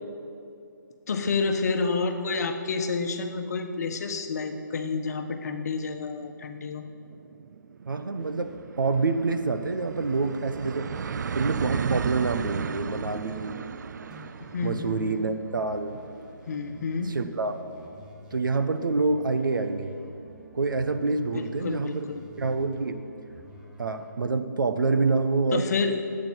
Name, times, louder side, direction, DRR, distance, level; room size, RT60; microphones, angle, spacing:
voice 1, 1.1-6.8 14.5-15.2 16.5-17.1 21.3-22.2 25.5-26.0, left 4 dB, 55° left, 6 dB, 1.2 m, -29 dB
sound 1, 6.4-6.5 6.7-18.1, right 7 dB, 60° right, 0.4 m, -35 dB
voice 2, 7.9-8.5 8.8-10.9 11.3-13.6 14.6-16.0 17.1-17.6 18.3-20.0 20.5-22.1 22.4-23.0 23.8-25.6, right 3 dB, 85° right, 9 dB, 1.1 m, -27 dB
sound 2, 8.2-8.6 8.9-24.1, right 1 dB, 5° right, 1.2 m, -51 dB
22.0 x 8.7 x 4.6 m, 2.7 s
hypercardioid pair, 155°, 11 cm